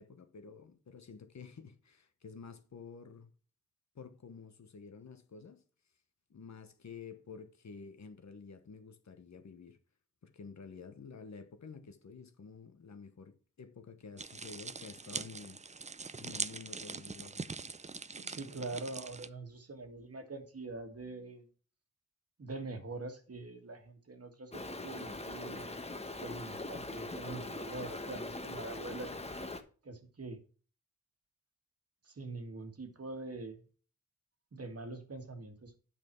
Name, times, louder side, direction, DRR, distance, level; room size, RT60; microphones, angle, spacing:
voice 1, 0.0-3.3 3.9-5.6 6.3-9.8 10.2-15.6 16.2-17.5, left 5 dB, 55° left, 1.2 m, -50 dB
sound 1, 14.2-19.3, right 4 dB, 20° right, 0.5 m, -42 dB
voice 2, 18.2-21.5 22.4-29.6 29.8-30.4 32.0-33.6 34.5-35.8, right 3 dB, 45° right, 1.8 m, -44 dB
Stream, 24.5-29.6, left 2 dB, 20° left, 1.0 m, -42 dB
9.0 x 5.5 x 4.5 m
cardioid pair, 70°, 34 cm